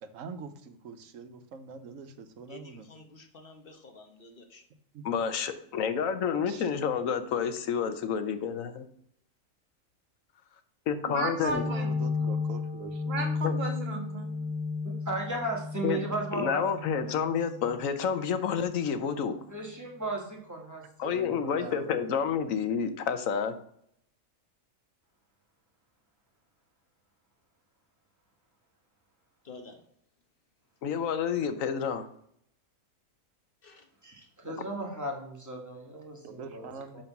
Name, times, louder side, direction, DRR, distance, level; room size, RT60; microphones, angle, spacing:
voice 1, 0.0-2.9 4.9-5.1 6.5-7.0 11.2-13.0 21.0-22.3 36.2-37.0, right 5 dB, 75° right, 9 dB, 1.1 m, -44 dB
voice 2, 2.5-4.6 29.4-29.8 33.6-33.9, left 3 dB, 45° left, 5 dB, 1.1 m, -50 dB
voice 3, 5.0-8.8 10.9-11.6 13.4-13.6 15.8-16.0 16.3-19.3 21.0-23.5 30.8-32.0, left 7 dB, 80° left, 10 dB, 1.2 m, -29 dB
voice 4, 11.0-12.3 13.0-14.4, right 2 dB, 45° right, 3 dB, 1.7 m, -35 dB
sound 1, 11.5-18.8, left 4 dB, 5° left, 1.1 m, -34 dB
voice 5, 14.8-17.2 19.5-20.9 21.2-21.8 34.0-36.7 36.9-37.0, right 2 dB, 15° right, -1 dB, 1.7 m, -36 dB
5.5 x 5.4 x 5.8 m, 0.67 s
omnidirectional pair, 1.4 m